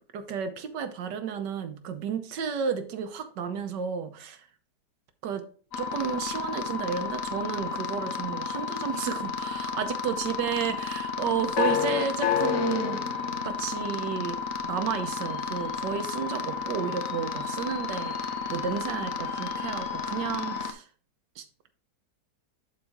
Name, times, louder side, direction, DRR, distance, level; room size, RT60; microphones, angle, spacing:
voice 1, 0.1-4.4 5.2-5.4 5.8-13.0 13.4-20.8 21.4-21.5, right 7 dB, 90° right, 1.5 m, -32 dB
sound 1, 5.7-20.7, left 6 dB, 60° left, 1.0 m, -31 dB
11.0 x 4.1 x 3.6 m
omnidirectional pair, 1.8 m